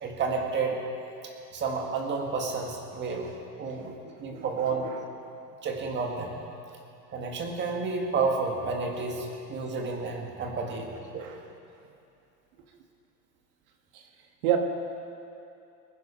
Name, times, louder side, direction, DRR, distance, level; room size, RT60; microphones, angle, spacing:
voice 1, 0.0-0.8 1.5-3.3 3.6-3.9 4.2-4.9 5.6-6.4 7.1-10.9 11.1-11.3, right 4 dB, 20° right, 1 dB, 1.9 m, -30 dB
voice 2, 4.3-4.4 4.8-4.9 11.2-11.4 14.4-14.6, right 11 dB, 55° right, 4 dB, 1.6 m, -27 dB
24.5 x 10.5 x 4.4 m, 2.7 s
supercardioid pair, 150°, 49 cm